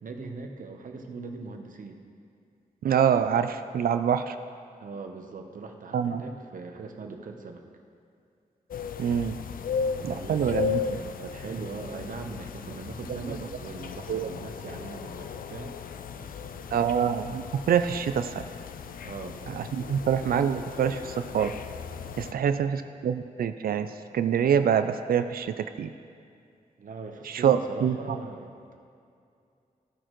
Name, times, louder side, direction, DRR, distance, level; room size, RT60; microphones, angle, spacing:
voice 1, 0.0-2.0 4.8-7.6 9.9-15.8 16.1-16.9 19.0-19.4 19.8-19.9 22.2-22.6 26.8-28.8, right 4 dB, 65° right, 4 dB, 0.9 m, -41 dB
voice 2, 2.8-4.4 5.9-6.2 9.0-9.4 10.0-10.8 13.3-13.4 14.1-14.3 16.7-18.4 19.5-21.5 22.2-25.9 27.2-28.2, right 8 dB, 80° right, 10 dB, 0.4 m, -26 dB
sound 1, 8.7-22.3, left 6 dB, 70° left, 0.4 m, -36 dB
15.5 x 6.4 x 3.1 m, 2.4 s
wide cardioid pair, 125°, 15 cm